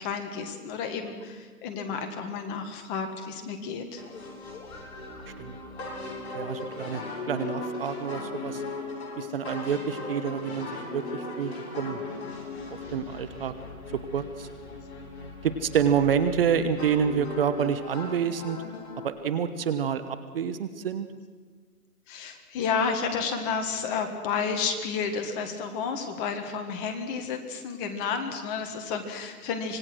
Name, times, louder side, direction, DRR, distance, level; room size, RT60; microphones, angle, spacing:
voice 1, 0.0-4.0 22.1-29.8, left 5 dB, 20° left, 5 dB, 1.6 m, -31 dB
sound 1, 4.0-19.1, left 3 dB, 45° left, 6.4 m, -38 dB
voice 2, 6.3-8.6 9.1-12.0 12.7-13.5 14.1-14.5 15.4-18.6 19.0-21.1, right 7 dB, 40° right, 11 dB, 1.1 m, -28 dB
25.5 x 19.5 x 6.3 m, 1.5 s
hypercardioid pair, 150°, 46 cm